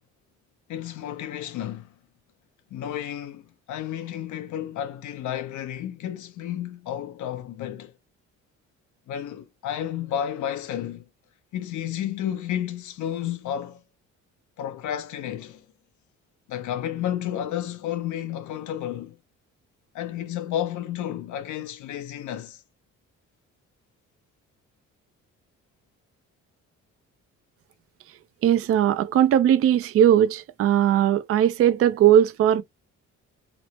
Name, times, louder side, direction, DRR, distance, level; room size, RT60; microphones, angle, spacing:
voice 1, 0.7-1.9 2.7-7.9 9.1-11.0 11.5-13.8 14.6-15.7 16.5-19.2 19.9-22.6, left 10 dB, 75° left, 0.6 m, -31 dB
voice 2, 28.4-32.6, right 10 dB, 50° right, 0.4 m, -19 dB
3.0 x 2.0 x 2.9 m
cardioid pair, 90°, 30 cm